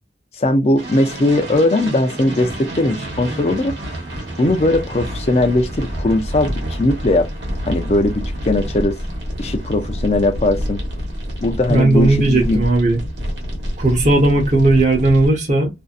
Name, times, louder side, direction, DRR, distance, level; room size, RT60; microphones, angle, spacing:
voice 1, 0.4-3.7 4.4-7.3 7.7-9.0 9.4-10.8 11.4-12.6, left 2 dB, 35° left, 0.4 m, -19 dB
sound 1, 0.8-15.3, equal, 70° right, 1.1 m, -28 dB
voice 2, 11.7-13.0 13.8-15.7, right 2 dB, 40° right, 0.8 m, -15 dB
2.6 x 2.2 x 2.3 m
head